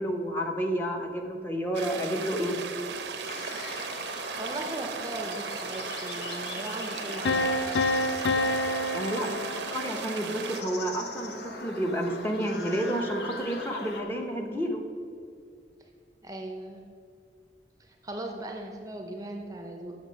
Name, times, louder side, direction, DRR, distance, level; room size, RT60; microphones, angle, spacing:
voice 1, 0.0-2.6 8.9-14.8, equal, 15° left, 2 dB, 0.7 m, -30 dB
sound 1, 1.7-10.6, right 5 dB, 75° right, 0.6 m, -37 dB
sound 2, 3.2-14.0, left 2 dB, 70° left, 0.9 m, -40 dB
voice 2, 4.4-7.5 16.2-16.8 17.8-20.0, right 1 dB, 20° right, 3 dB, 0.6 m, -38 dB
sound 3, 7.3-10.2, left 1 dB, 85° left, 0.4 m, -28 dB
7.3 x 6.4 x 5.2 m, 2.4 s
head